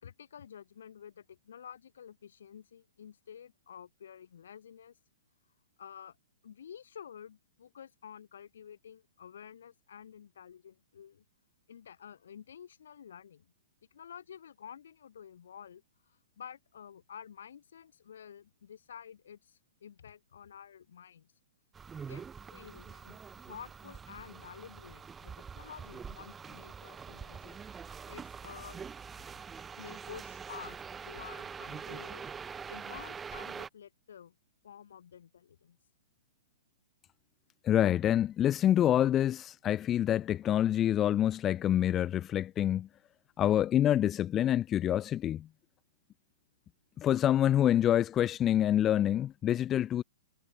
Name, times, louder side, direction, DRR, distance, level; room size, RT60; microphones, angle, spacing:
voice 1, 0.0-5.0 5.8-6.2 6.4-11.2 11.7-13.5 13.9-21.3 22.1-27.6 28.1-28.8 29.8-32.2 32.7-34.3 34.6-35.8, left 8 dB, 75° left, 4.3 m, -50 dB
sound 1, 21.7-33.7, right 6 dB, 15° right, 0.8 m, -44 dB
voice 2, 37.6-42.9 43.4-45.5 47.0-50.0, left 11 dB, 25° left, 0.9 m, -27 dB
hypercardioid pair, 125°, 0 cm